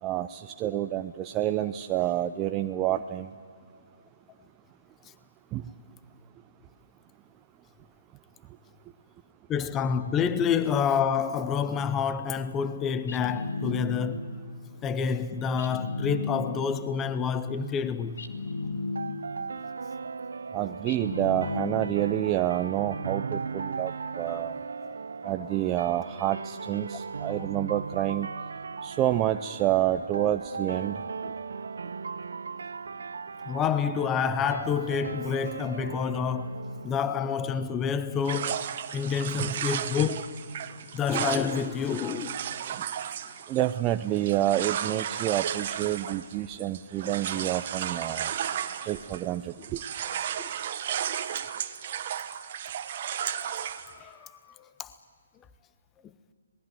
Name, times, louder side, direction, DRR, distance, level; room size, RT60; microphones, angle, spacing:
voice 1, 0.0-3.3 5.5-5.6 20.5-24.6 25.2-28.3 28.8-31.0 39.4-39.6 43.5-48.3 48.9-49.8, right 13 dB, 20° right, 0.5 m, -28 dB
voice 2, 9.5-14.3 14.8-18.2 24.3-24.4 24.8-24.9 25.4-25.5 27.3-27.4 31.2-31.3 33.5-36.6 36.8-40.3 40.9-42.4 50.4-50.5 53.2-54.3 54.8-54.9, left 7 dB, 15° left, 0.8 m, -28 dB
sound 1, 13.1-14.4 15.6-16.9 18.2-19.5 20.9-22.2, left 3 dB, 70° left, 2.1 m, -34 dB
sound 2, 19.0-37.9, right 5 dB, 75° right, 0.6 m, -38 dB
sound 3, 38.2-49.3 49.6-53.9, right 9 dB, 45° right, 1.4 m, -34 dB
26.0 x 19.5 x 9.3 m
hypercardioid pair, 145°, 0 cm